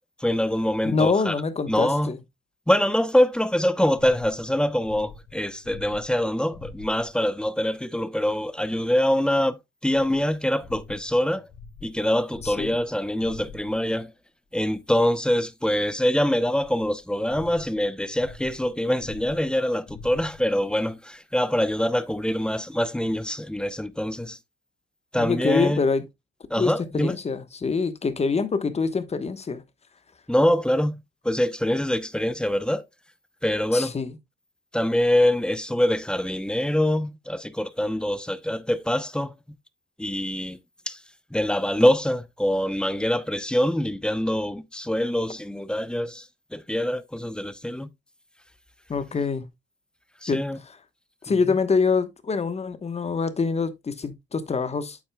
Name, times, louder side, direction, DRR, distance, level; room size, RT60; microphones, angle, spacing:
voice 1, 0.2-1.3 1.7-2.1 2.7-9.6 9.8-11.5 11.8-14.1 14.5-24.4 25.1-25.8 26.5-27.2 30.3-31.0 31.2-32.8 33.4-33.9 34.7-39.3 40.0-40.6 40.9-41.0 41.3-46.3 46.5-47.9 50.2-50.6 51.3-51.4, left 1 dB, 5° left, 0.7 m, -24 dB
voice 2, 0.8-2.2 12.4-12.7 25.2-26.0 26.6-29.6 33.7-34.1 48.9-49.4 50.3-50.8 51.2-55.0, left 4 dB, 30° left, 1.1 m, -25 dB
sound 1, 4.0-7.3 9.9-14.0 16.5-20.7, left 4 dB, 75° left, 3.1 m, -46 dB
8.4 x 7.5 x 2.2 m
cardioid pair, 90°, 20 cm